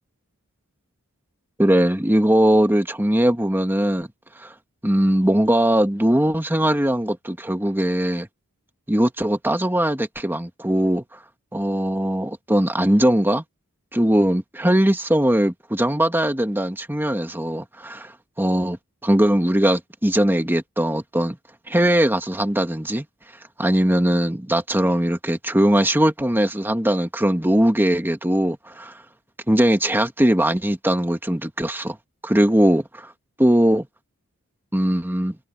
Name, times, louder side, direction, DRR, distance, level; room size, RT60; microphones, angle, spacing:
voice 1, 1.6-4.1 4.4-4.5 4.8-8.3 8.9-11.0 11.5-13.4 13.9-18.1 18.4-18.8 19.0-21.3 21.7-23.0 23.6-29.0 29.5-32.0 32.2-33.1 33.4-33.9 34.7-35.3, right 1 dB, 10° right, 1.7 m, -20 dB
head